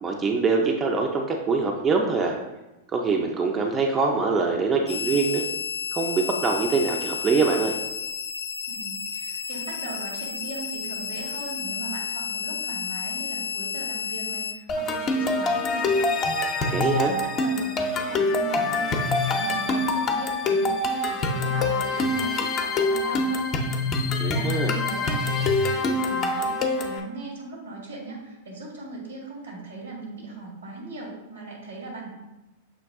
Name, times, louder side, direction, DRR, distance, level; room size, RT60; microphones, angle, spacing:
voice 1, 0.0-2.4 2.9-5.4 5.9-7.8 16.7-17.1 24.2-24.7, right 4 dB, 25° right, 1 dB, 0.5 m, -24 dB
sound 1, 4.9-14.5, left 6 dB, 85° left, 0.4 m, -31 dB
voice 2, 8.7-23.5 24.0-32.1, right 3 dB, 85° right, -1 dB, 1.5 m, -38 dB
sound 2, 14.7-27.0, left 2 dB, 35° left, 0.6 m, -25 dB
6.1 x 2.3 x 3.5 m, 1.0 s
hypercardioid pair, 105°, 0 cm